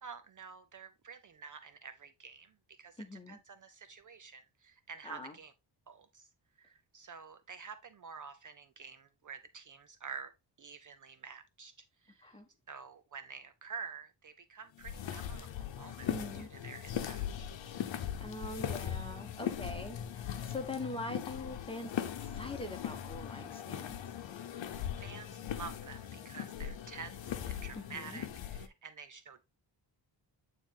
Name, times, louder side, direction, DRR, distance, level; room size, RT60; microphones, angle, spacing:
voice 1, 0.0-2.5 2.8-5.5 5.9-6.3 6.6-10.3 10.6-12.3 12.7-17.5 24.6-29.4, right 5 dB, 45° right, 0.6 m, -49 dB
voice 2, 3.0-3.4 5.0-5.3 12.2-12.5 16.1-16.5 18.2-24.0 27.8-28.2, left 2 dB, 10° left, 1.2 m, -43 dB
sound 1, 14.8-28.7, left 9 dB, 80° left, 0.9 m, -40 dB
9.1 x 3.3 x 3.7 m
wide cardioid pair, 155°, 43 cm